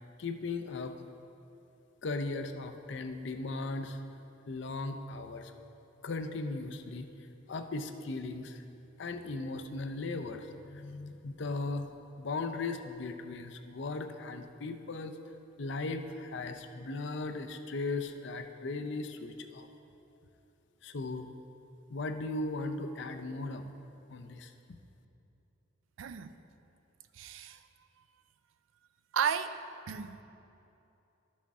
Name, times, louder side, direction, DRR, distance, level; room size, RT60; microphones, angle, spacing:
voice 1, 0.2-1.0 2.0-4.0 4.5-5.5 6.0-7.1 7.5-8.6 9.0-11.9 12.2-15.2 15.6-19.7 20.8-21.3 21.9-23.7 24.1-24.5, left 3 dB, 60° left, 7 dB, 0.5 m, -37 dB
voice 2, 26.0-26.4 27.1-27.6 29.1-29.6 29.9-30.2, right 7 dB, 75° right, 11 dB, 0.4 m, -33 dB
12.0 x 6.3 x 3.6 m, 2.9 s
head